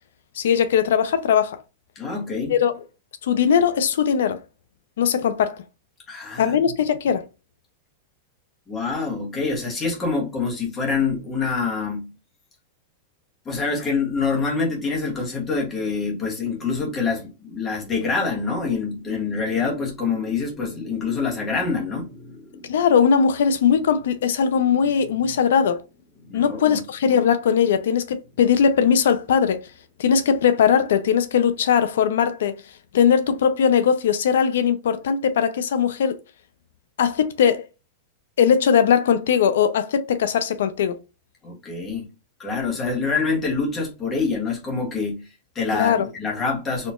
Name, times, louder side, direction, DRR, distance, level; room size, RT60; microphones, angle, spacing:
voice 1, 0.3-1.6 2.5-2.7 3.2-4.4 5.0-5.6 6.4-7.3 22.7-25.8 26.3-29.7 30.0-32.6 32.9-36.2 37.0-37.6 38.4-41.0 45.7-46.1, left 7 dB, 85° left, 0.5 m, -19 dB
voice 2, 1.9-2.5 6.1-6.6 8.7-12.1 13.4-22.7 26.3-26.8 41.4-42.1 42.4-46.9, left 4 dB, 15° left, 1.2 m, -26 dB
4.2 x 2.9 x 2.4 m
supercardioid pair, 175°, 0 cm